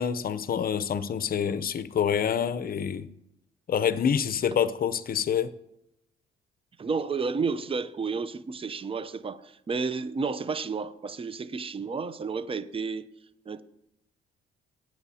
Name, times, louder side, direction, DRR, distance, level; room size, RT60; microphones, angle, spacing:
voice 1, 0.0-3.1 3.7-5.5, left 8 dB, 50° left, 0.6 m, -27 dB
voice 2, 6.8-13.1 13.5-13.6, right 5 dB, 30° right, 0.6 m, -31 dB
20.0 x 9.0 x 2.8 m
cardioid pair, 90°, 20 cm